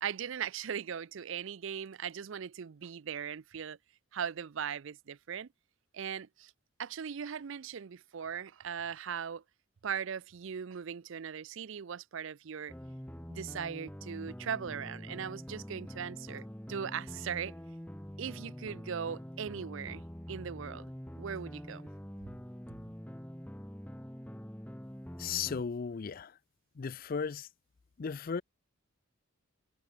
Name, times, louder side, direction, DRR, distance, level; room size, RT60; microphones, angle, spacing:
voice 1, 0.0-3.8 4.1-5.5 5.9-6.5 6.8-9.4 9.8-12.7 13.3-17.5 18.2-20.0 20.3-20.9 21.2-21.9, right 7 dB, 60° right, 0.4 m, -39 dB
sound 1, 12.7-25.6, equal, 5° left, 1.1 m, -45 dB
voice 2, 25.2-26.4 26.8-27.5 28.0-28.4, left 6 dB, 40° left, 0.4 m, -35 dB
head